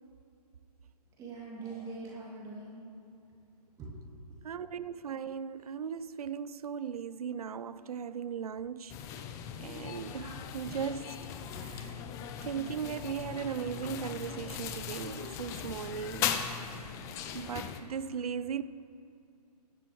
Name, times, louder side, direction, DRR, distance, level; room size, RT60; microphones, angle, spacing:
voice 1, 1.2-3.1 3.8-3.9 4.3-4.4, right 3 dB, 15° right, 2.6 m, -43 dB
voice 2, 4.4-9.2 9.6-11.3 11.6-12.0 12.4-16.4 17.3-18.6, right 7 dB, 65° right, 0.6 m, -38 dB
sound 1, 8.9-17.8, left 8 dB, 15° left, 0.5 m, -38 dB
23.5 x 11.0 x 3.1 m
figure-of-eight pair, 140°, 21 cm